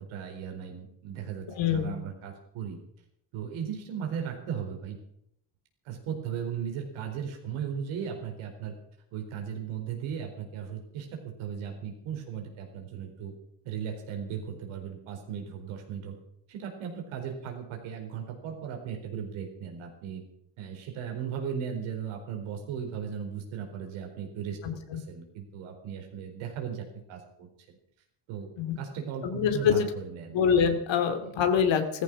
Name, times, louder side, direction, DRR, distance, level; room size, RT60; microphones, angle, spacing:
voice 1, 0.0-2.8 3.3-5.0 5.8-8.7 9.1-13.3 13.6-16.2 16.5-20.2 20.6-27.8 28.3-30.4 31.2-31.3, right 7 dB, 85° right, 3 dB, 4.4 m, -37 dB
voice 2, 1.5-1.9 24.6-24.7 28.6-28.8 29.2-29.9 30.3-32.0, left 7 dB, 65° left, 7 dB, 2.6 m, -25 dB
15.0 x 14.5 x 6.3 m, 0.74 s
supercardioid pair, 80°, 47 cm